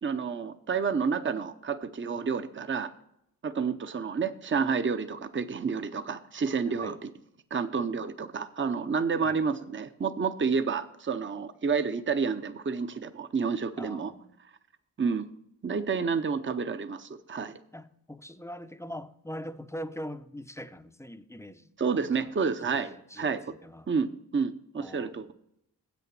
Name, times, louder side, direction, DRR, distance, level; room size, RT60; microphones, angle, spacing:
voice 1, 0.0-2.9 3.4-7.1 7.5-14.1 15.0-15.3 15.6-17.5 21.8-23.4 23.9-25.3, right 5 dB, 30° right, 0.7 m, -30 dB
voice 2, 6.7-7.0 9.2-9.4 13.8-14.3 17.7-22.3 22.6-23.9 24.8-25.3, equal, 10° left, 0.6 m, -42 dB
7.8 x 7.0 x 5.9 m
cardioid pair, 50°, 37 cm